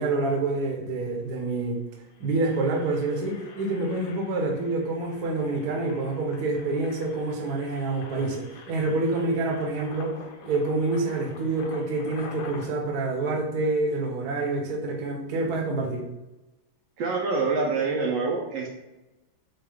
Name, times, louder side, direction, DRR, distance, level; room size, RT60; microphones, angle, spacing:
voice 1, 0.0-1.8 2.2-10.2 10.4-16.0, right 2 dB, 60° right, 1 dB, 1.3 m, -27 dB
Engine, 0.9-1.0 1.3-1.5 2.0-12.7, left 5 dB, 80° left, 1.5 m, -47 dB
voice 2, 17.0-18.7, right 4 dB, 75° right, -1 dB, 1.3 m, -26 dB
4.6 x 2.3 x 4.8 m, 1.0 s
omnidirectional pair, 2.2 m